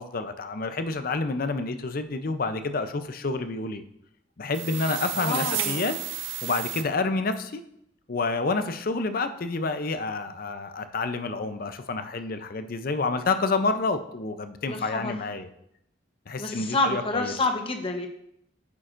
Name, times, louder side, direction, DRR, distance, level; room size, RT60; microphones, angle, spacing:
voice 1, 0.0-3.8 4.4-5.9 6.4-7.6 8.1-15.5 16.3-17.3, left 3 dB, 50° left, 9 dB, 0.6 m, -29 dB
sound 1, 4.5-6.8, right 11 dB, 85° right, 0.7 m, -32 dB
voice 2, 5.2-5.8 14.7-15.1 16.4-18.1, left 2 dB, 30° left, 4 dB, 0.9 m, -28 dB
9.4 x 8.5 x 2.6 m, 0.76 s
head